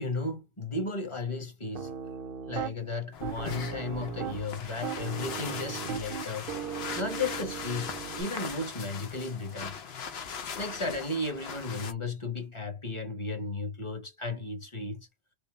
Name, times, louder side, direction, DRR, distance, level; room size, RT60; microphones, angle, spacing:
voice 1, 0.0-1.9 2.5-6.5 7.0-9.7 10.6-15.1, left 3 dB, 30° left, 1.0 m, -34 dB
Piano, 1.7-2.7 3.2-4.5 4.8-8.2, right 9 dB, 65° right, 0.7 m, -38 dB
sound 1, 3.1-11.9, left 6 dB, 70° left, 1.0 m, -40 dB
3.4 x 2.7 x 3.2 m
omnidirectional pair, 1.1 m